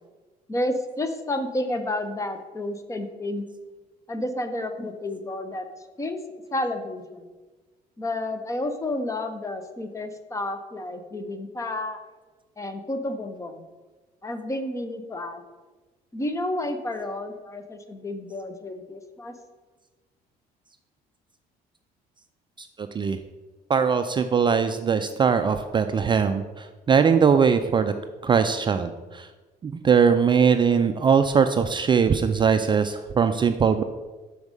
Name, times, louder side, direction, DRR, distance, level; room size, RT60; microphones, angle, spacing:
voice 1, 0.5-3.4 4.1-5.7 6.0-6.2 6.5-7.3 8.0-12.0 12.6-13.6 14.2-15.4 16.1-19.3, left 1 dB, 20° left, 8 dB, 0.7 m, -30 dB
voice 2, 22.6-23.2 23.7-27.9 28.2-29.3 29.6-33.8, right 6 dB, 30° right, 8 dB, 0.3 m, -21 dB
6.4 x 4.7 x 5.3 m, 1.2 s
cardioid pair, 110°, 17 cm